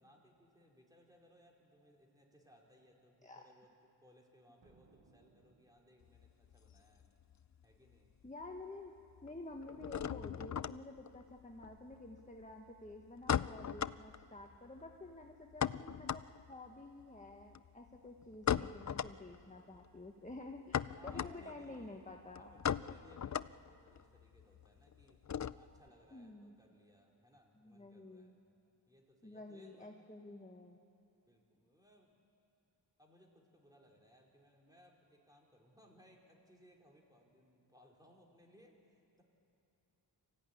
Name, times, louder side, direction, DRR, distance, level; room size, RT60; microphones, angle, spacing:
voice 1, 0.0-7.1 7.6-8.1 20.9-22.0 22.4-25.2 25.5-28.3 28.9-29.9 31.3-32.1 33.0-39.2, equal, 10° right, -1 dB, 4.4 m, -65 dB
sound 1, 4.6-6.4, right 3 dB, 70° right, 2.0 m, -68 dB
sound 2, 6.0-7.6 7.9-8.6 8.9-25.9, left 8 dB, 40° left, 0.4 m, -40 dB
voice 2, 8.2-8.9 9.2-16.2 16.5-22.5 26.1-26.5 27.6-28.4 29.2-30.8, left 2 dB, 15° left, 2 dB, 1.4 m, -51 dB
Owls loop denoised, 22.0-23.9 25.2-26.2, right 1 dB, 30° right, 5.6 m, -70 dB
26.0 x 15.5 x 9.9 m, 2.8 s
wide cardioid pair, 65°, 45 cm